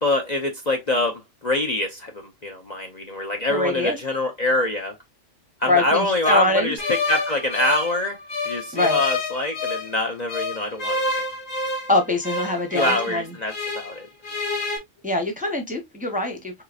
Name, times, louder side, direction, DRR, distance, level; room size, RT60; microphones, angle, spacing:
voice 1, 0.0-4.9 5.6-6.8 7.1-8.2 8.4-11.3 12.7-14.1, left 1 dB, 40° left, 0.7 m, -25 dB
voice 2, 3.5-4.0 5.7-6.8 8.7-9.0 11.9-13.3 15.0-16.6, left 2 dB, 10° right, 0.7 m, -23 dB
sound 1, 6.8-10.0 10.3-14.0 14.2-14.8, left 3 dB, 90° left, 1.8 m, -28 dB
4.8 x 3.0 x 2.4 m
omnidirectional pair, 1.3 m